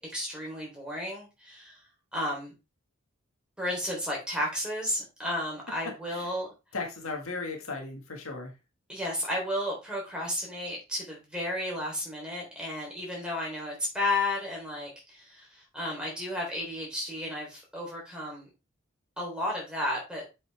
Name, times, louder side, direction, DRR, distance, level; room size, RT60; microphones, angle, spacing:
voice 1, 0.1-1.8 2.1-2.5 3.6-6.5 8.9-18.5 19.2-20.2, left 1 dB, 5° right, -3 dB, 3.5 m, -33 dB
voice 2, 6.7-8.5, left 3 dB, 75° left, 2 dB, 1.8 m, -36 dB
7.8 x 5.5 x 3.4 m, 0.28 s
head